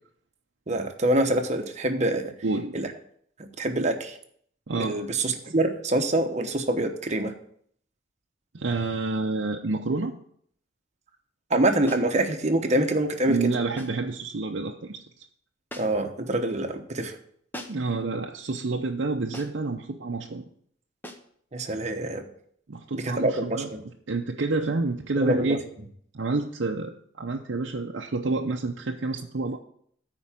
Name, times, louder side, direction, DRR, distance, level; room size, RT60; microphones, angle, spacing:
voice 1, 0.7-2.3 2.7-2.9 3.4-4.2 4.7-7.3 11.5-13.5 15.8-17.1 21.5-22.2 22.9-23.8 25.2-25.6, right 1 dB, 35° right, 5 dB, 1.0 m, -25 dB
voice 2, 2.4-2.8 4.7-5.0 8.5-10.1 13.3-15.2 17.7-20.5 22.7-23.7 24.1-25.6 26.1-29.6, right 3 dB, 65° right, 1 dB, 0.7 m, -29 dB
sound 1, 11.9-12.2 13.8-14.1 15.7-16.1 17.5-18.0 19.3-19.7 21.0-21.3, equal, 10° left, 0.8 m, -42 dB
9.6 x 4.6 x 7.3 m, 0.64 s
head